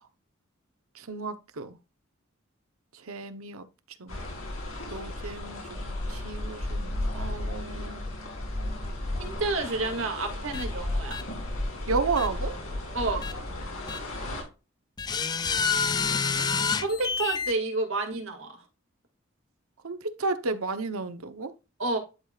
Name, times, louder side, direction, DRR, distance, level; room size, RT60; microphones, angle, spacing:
voice 1, 1.0-1.8 3.1-3.6 4.0-4.2 4.9-8.0 11.9-12.6 16.0-16.5 19.8-21.5, right 4 dB, 90° right, 0.9 m, -33 dB
sound 1, 4.1-14.4, left 1 dB, 80° left, 3.5 m, -34 dB
voice 2, 9.2-11.3 12.9-13.3 16.8-18.6 21.8-22.0, right 2 dB, 70° right, 2.1 m, -30 dB
sound 2, 10.5-10.6 11.1-11.2 12.2-12.3 13.2-13.3 13.9-14.0 15.0-17.5, left 5 dB, 20° left, 0.3 m, -28 dB
11.0 x 4.9 x 2.4 m
head